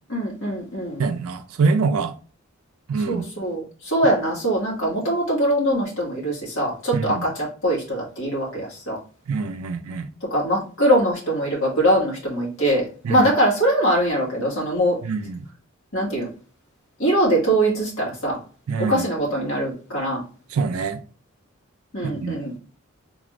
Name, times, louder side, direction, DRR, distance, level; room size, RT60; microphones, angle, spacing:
voice 1, 0.1-1.0 3.1-9.0 10.3-15.0 15.9-16.3 17.0-18.4 18.8-20.2 21.9-22.5, right 1 dB, 70° left, 1.7 m, -22 dB
voice 2, 1.0-2.1 2.9-3.3 6.9-7.2 9.3-10.1 13.0-13.3 15.0-15.5 18.7-19.0 20.5-21.0 22.1-22.4, right 4 dB, 85° right, 0.3 m, -24 dB
3.8 x 2.5 x 3.1 m
head